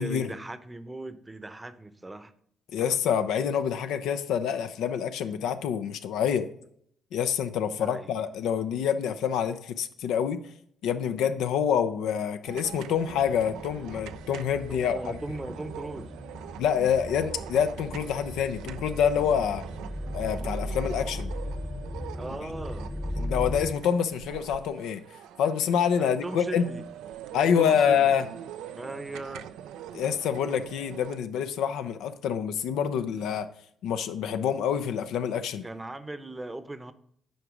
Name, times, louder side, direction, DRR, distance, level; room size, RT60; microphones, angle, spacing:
voice 1, 0.0-2.3 7.7-8.7 14.7-16.1 22.1-22.9 26.0-26.8 27.6-28.1 28.7-29.5 35.6-36.9, right 2 dB, 20° right, 12 dB, 0.7 m, -38 dB
voice 2, 2.7-6.5 7.1-10.4 10.8-15.2 16.6-19.6 20.1-21.3 23.2-25.0 25.4-26.7 27.3-28.2 29.9-33.5 33.8-35.7, left 8 dB, 85° left, 9 dB, 0.5 m, -27 dB
sound 1, 12.5-31.2, right 10 dB, 85° right, 0.3 m, -43 dB
sound 2, 13.1-23.7, left 1 dB, 20° left, 0.9 m, -37 dB
7.8 x 4.8 x 5.0 m, 0.66 s
supercardioid pair, 70°, 0 cm